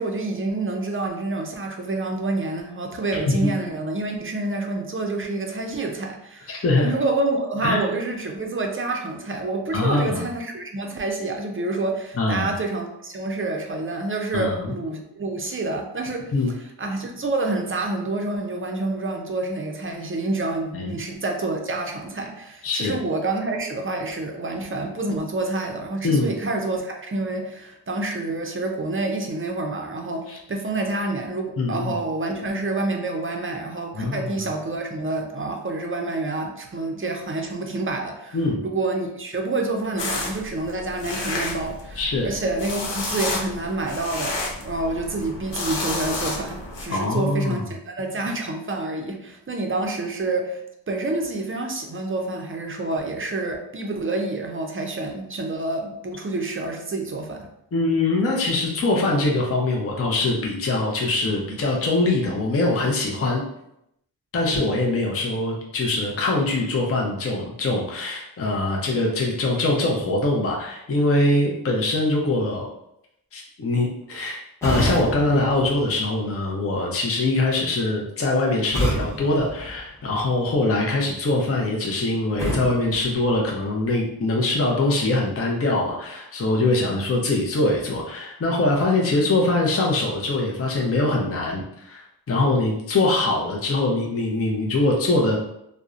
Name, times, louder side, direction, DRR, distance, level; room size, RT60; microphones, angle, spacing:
voice 1, 0.0-16.3 16.8-38.4 38.6-50.6 50.9-57.5, right 2 dB, 30° right, 2 dB, 0.5 m, -28 dB
voice 2, 6.5-6.9 7.6-7.9 9.7-10.3 12.2-12.5 14.3-14.7 16.3-16.5 20.7-20.9 22.6-23.0 26.0-26.3 30.3-30.4 31.6-32.0 33.9-34.3 38.3-38.6 42.0-42.3 46.9-47.6 57.7-63.4 64.3-72.7 73.3-95.4, left 2 dB, 35° left, -1 dB, 0.5 m, -23 dB
sound 1, 40.0-46.9, left 2 dB, 80° left, 0.6 m, -31 dB
sound 2, 74.6-76.6 78.7-80.4 82.4-84.0, equal, 5° left, 0.9 m, -30 dB
2.6 x 2.0 x 2.4 m, 0.79 s
cardioid pair, 40°, 42 cm